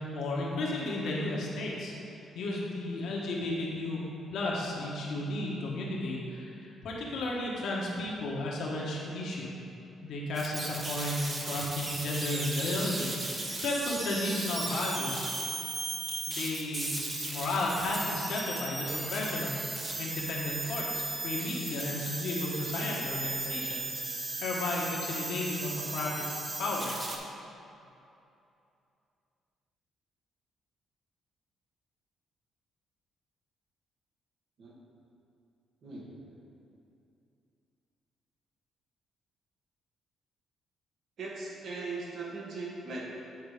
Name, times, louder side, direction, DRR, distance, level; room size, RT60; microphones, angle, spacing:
voice 1, 0.1-1.9 2.3-4.0 4.3-9.5 10.0-15.3 16.3-23.8 24.4-26.2 26.6-26.9, left 2 dB, 75° left, -3 dB, 1.4 m, -33 dB
sound 1, 10.4-27.2, right 2 dB, 30° right, 1.0 m, -36 dB
voice 2, 35.8-36.3 41.2-43.0, right 3 dB, 65° right, -4 dB, 1.7 m, -39 dB
8.3 x 4.0 x 5.0 m, 2.7 s
cardioid pair, 90°, 0 cm